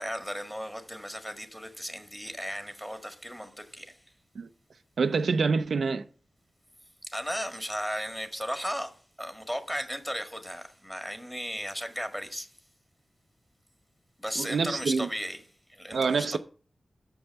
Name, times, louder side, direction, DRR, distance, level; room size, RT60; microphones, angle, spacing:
voice 1, 0.0-4.0 7.0-12.5 14.2-15.4 15.7-16.4, equal, 5° left, 1.7 m, -35 dB
voice 2, 5.0-6.0 14.4-15.1 15.9-16.4, right 4 dB, 80° right, 0.5 m, -26 dB
6.8 x 5.4 x 7.0 m
cardioid pair, 65°, 0 cm